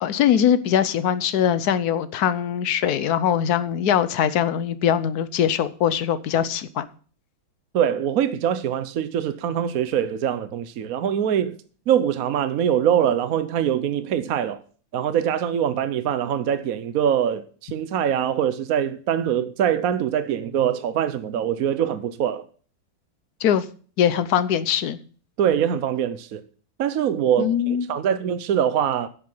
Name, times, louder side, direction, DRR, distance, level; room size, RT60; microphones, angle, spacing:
voice 1, 0.0-6.9 23.4-23.6 24.0-25.0 27.4-27.9, left 9 dB, 65° left, 1.2 m, -22 dB
voice 2, 7.7-11.5 11.9-14.6 14.9-22.5 25.4-26.4 26.8-29.1, right 9 dB, 65° right, 1.0 m, -23 dB
10.5 x 7.8 x 5.5 m
omnidirectional pair, 2.1 m